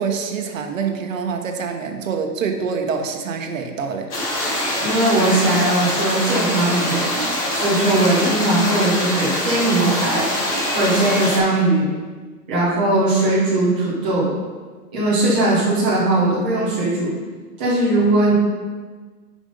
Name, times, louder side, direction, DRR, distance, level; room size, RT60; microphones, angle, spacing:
voice 1, 0.0-4.1, right 5 dB, 55° right, 5 dB, 1.1 m, -25 dB
sound 1, 4.1-11.4, left 1 dB, 45° left, 2.5 m, -23 dB
voice 2, 4.8-7.1 7.5-10.3 10.7-11.9 12.5-14.3 14.9-17.1 17.6-18.3, right 2 dB, 5° right, -9 dB, 0.5 m, -19 dB
7.2 x 5.4 x 5.2 m, 1.4 s
hypercardioid pair, 170°, 48 cm